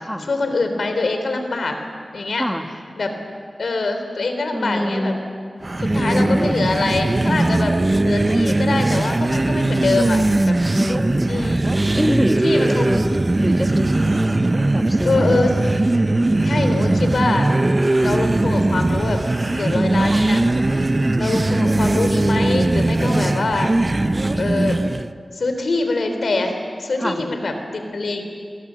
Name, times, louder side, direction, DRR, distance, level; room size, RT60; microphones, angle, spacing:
voice 1, 0.0-1.8 2.1-2.4 3.0-3.1 3.6-5.1 5.9-7.7 8.0-10.5 11.3-11.6 12.4-12.9 15.0-15.5 16.4-17.5 18.0-20.4 21.2-23.7 24.3-24.8 25.3-28.2, left 3 dB, 80° left, 6 dB, 3.5 m, -24 dB
voice 2, 4.5-5.2 5.9-6.5 10.7-11.4 12.0-13.0 13.4-14.4 14.7-15.4 16.8-17.1 20.1-20.2 21.6-21.9 27.0-27.3, equal, 5° left, 4 dB, 2.1 m, -25 dB
sound 1, 5.6-25.1, right 2 dB, 35° right, 0.8 m, -19 dB
26.5 x 23.0 x 7.6 m, 2.1 s
wide cardioid pair, 60°, 0 cm